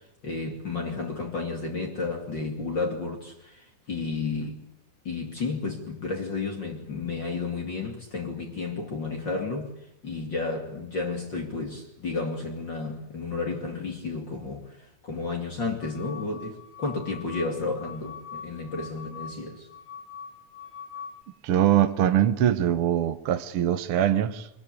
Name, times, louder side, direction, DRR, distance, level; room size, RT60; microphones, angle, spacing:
voice 1, 0.2-4.6 5.0-9.7 10.0-19.7, left 3 dB, 40° left, 3.1 m, -32 dB
sound 1, 15.8-21.2, left 6 dB, 70° left, 0.8 m, -43 dB
voice 2, 21.4-24.5, right 10 dB, 60° right, 1.7 m, -23 dB
24.0 x 21.5 x 8.5 m
omnidirectional pair, 3.5 m